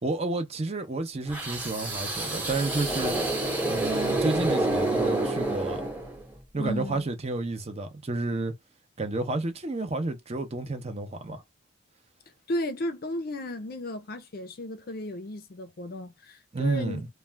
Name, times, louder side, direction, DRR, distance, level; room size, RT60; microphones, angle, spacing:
voice 1, 0.0-3.2 3.6-5.8 6.5-8.5 9.0-11.4 16.5-17.1, right 2 dB, 30° right, 0.6 m, -30 dB
sound 1, 1.3-6.4, right 2 dB, 10° right, 0.9 m, -28 dB
voice 2, 6.6-7.1 12.5-17.0, left 1 dB, 50° left, 0.5 m, -34 dB
2.5 x 2.2 x 3.2 m
head